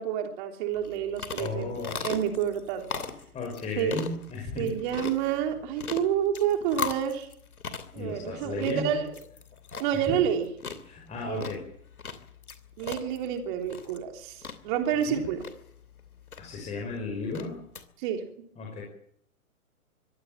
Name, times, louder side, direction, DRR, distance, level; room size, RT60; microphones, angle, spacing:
voice 1, 0.0-2.9 3.8-4.0 4.6-7.3 7.9-9.1 9.8-10.5 11.3-11.5 12.8-15.4 18.0-18.3, right 9 dB, 35° right, 5 dB, 3.5 m, -29 dB
sound 1, 0.7-17.8, left 5 dB, 75° left, 2.9 m, -40 dB
voice 2, 1.4-2.0 3.3-4.7 8.0-9.0 10.1-10.2 10.9-11.6 15.1-15.2 16.4-17.5 18.6-18.8, left 4 dB, 15° left, -1 dB, 5.4 m, -34 dB
24.5 x 16.0 x 7.5 m, 0.69 s
figure-of-eight pair, 125°, 44 cm